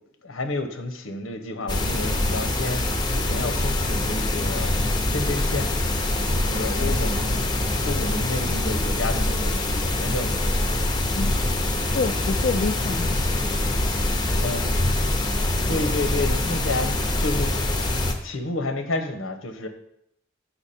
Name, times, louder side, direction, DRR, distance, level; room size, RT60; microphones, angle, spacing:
voice 1, 0.2-2.8 3.1-4.7 5.0-5.7 6.3-7.5 7.8-10.4 14.4-14.8 15.7-17.5 18.2-19.7, left 2 dB, 90° left, 7 dB, 1.0 m, -30 dB
sound 1, 1.7-18.1, left 1 dB, 20° left, 0.7 m, -24 dB
voice 2, 11.9-13.2, left 4 dB, 45° left, 7 dB, 0.3 m, -27 dB
7.0 x 5.7 x 4.3 m, 0.75 s
head